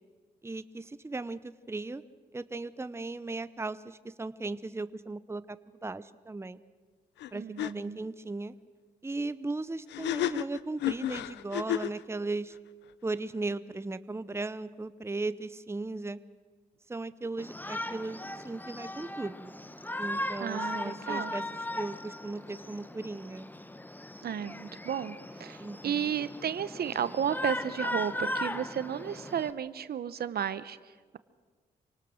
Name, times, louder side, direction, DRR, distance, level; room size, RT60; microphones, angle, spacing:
voice 1, 0.4-2.0 2.3-6.6 7.3-8.5 9.0-12.6 13.0-16.2 16.9-18.2 18.4-19.5 20.0-21.4 21.8-23.5 25.6-26.1, right 3 dB, 15° right, 14 dB, 0.8 m, -37 dB
sound 1, 7.2-7.3 7.6-7.7 9.9-12.0, left 13 dB, 85° left, 0.6 m, -31 dB
voice 2, 7.3-8.0 20.4-21.3 24.2-30.8, right 8 dB, 65° right, 14 dB, 0.9 m, -33 dB
Shout, 17.4-29.5, left 1 dB, 10° left, 1.0 m, -38 dB
26.5 x 19.0 x 6.5 m, 1.5 s
supercardioid pair, 55°, 18 cm